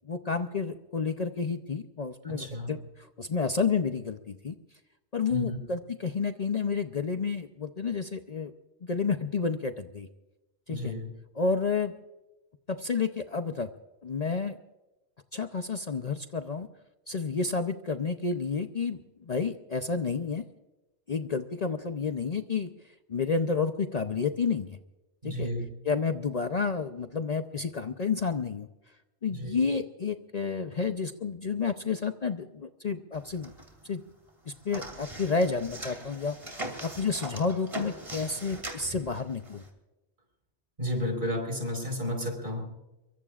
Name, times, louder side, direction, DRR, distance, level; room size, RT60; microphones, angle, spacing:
voice 1, 0.1-2.8 3.2-4.6 5.1-8.5 8.8-10.1 10.7-10.9 11.4-11.9 12.7-13.7 14.0-14.6 15.3-16.7 17.1-20.4 21.1-22.7 23.1-24.8 25.2-25.5 25.9-28.7 29.2-33.5 33.8-34.0 34.5-36.4 36.8-39.6, left 5 dB, 45° left, 7 dB, 0.7 m, -30 dB
voice 2, 2.2-2.8 5.3-5.6 10.7-11.1 25.2-25.8 29.3-29.6 40.8-42.6, equal, 55° right, 3 dB, 4.8 m, -32 dB
sound 1, 33.1-34.0 34.3-39.7, right 1 dB, 30° right, 2.9 m, -41 dB
24.5 x 23.0 x 2.5 m, 1.0 s
omnidirectional pair, 1.1 m